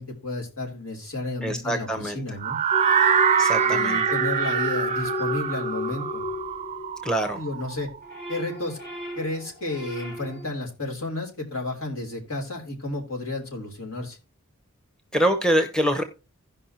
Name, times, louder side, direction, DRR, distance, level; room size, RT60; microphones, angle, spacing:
voice 1, 0.0-2.6 3.6-6.2 7.3-7.9 8.3-8.8 9.2-14.2, left 2 dB, 70° left, 1 dB, 3.4 m, -32 dB
voice 2, 1.4-2.2 3.4-4.0 7.0-7.4 15.1-16.0, right 1 dB, 5° left, 6 dB, 0.8 m, -24 dB
sound 1, 2.4-8.3, right 7 dB, 30° right, 0.4 m, -24 dB
sound 2, 2.7-7.4 7.8-10.6, left 2 dB, 50° left, 2.9 m, -33 dB
16.5 x 5.5 x 2.9 m, 0.30 s
head